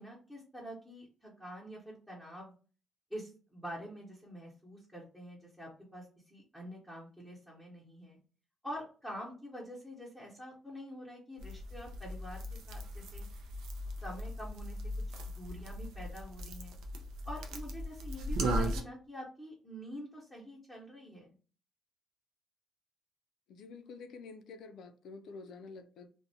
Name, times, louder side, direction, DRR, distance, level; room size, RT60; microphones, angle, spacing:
voice 1, 0.0-2.5 3.1-8.2 8.6-13.3 14.0-14.9 15.3-16.8 17.2-21.3, equal, 5° right, 0.9 m, -46 dB
sound 1, 11.4-18.8, equal, 90° right, 0.4 m, -38 dB
voice 2, 23.5-26.1, left 4 dB, 75° left, 0.4 m, -48 dB
2.4 x 2.1 x 2.7 m
cardioid pair, 90°, 0 cm